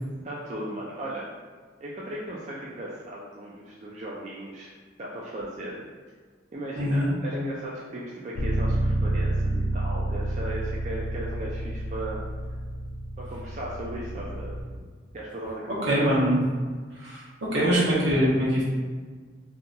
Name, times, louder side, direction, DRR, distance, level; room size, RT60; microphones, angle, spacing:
voice 1, 0.2-1.3 1.8-4.7 5.0-5.8 6.5-12.2 13.2-14.5 15.1-16.1, right 1 dB, 35° right, -5 dB, 0.3 m, -36 dB
voice 2, 6.8-7.1 15.9-16.4 17.0-18.6, equal, 75° right, -8 dB, 1.1 m, -23 dB
Bass guitar, 8.4-14.6, right 1 dB, 65° left, 0.4 m, -29 dB
2.8 x 2.3 x 3.8 m, 1.5 s
head